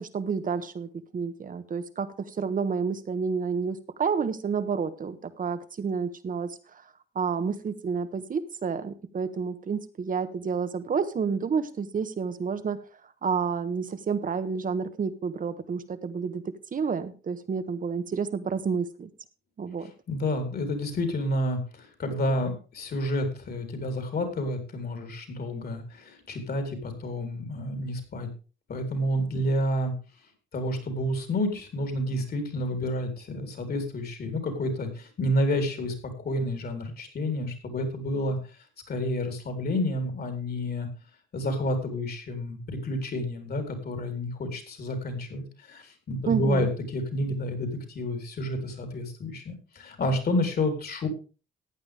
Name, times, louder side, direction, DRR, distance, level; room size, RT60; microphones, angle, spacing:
voice 1, 0.0-6.8 7.1-12.8 13.2-19.1 19.6-19.9 46.3-46.7, right 5 dB, 45° right, 12 dB, 1.4 m, -30 dB
voice 2, 20.1-28.3 28.7-29.9 30.5-40.9 41.3-51.1, left 1 dB, 50° left, 5 dB, 3.9 m, -30 dB
15.0 x 9.3 x 3.5 m, 0.34 s
cardioid pair, 90°, 20 cm